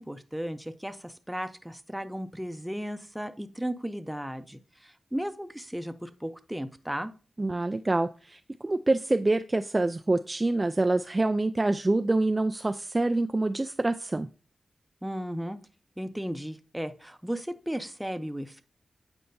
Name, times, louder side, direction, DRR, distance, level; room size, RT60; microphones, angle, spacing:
voice 1, 0.0-7.1 15.0-15.6 16.0-18.6, equal, 5° right, 9 dB, 0.7 m, -35 dB
voice 2, 7.4-14.3, right 2 dB, 30° right, 9 dB, 0.3 m, -26 dB
8.5 x 4.4 x 2.7 m, 0.35 s
cardioid pair, 60°, 0 cm